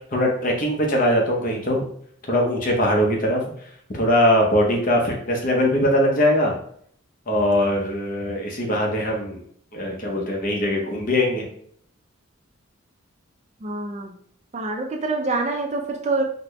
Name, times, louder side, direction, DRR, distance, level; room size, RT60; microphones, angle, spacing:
voice 1, 0.1-1.8 2.3-3.4 3.9-6.6 7.3-9.4 9.7-11.5, left 1 dB, 40° left, 0 dB, 0.7 m, -21 dB
voice 2, 13.6-14.1 14.5-16.2, right 3 dB, 30° right, 3 dB, 0.3 m, -26 dB
4.1 x 2.1 x 3.0 m, 0.63 s
head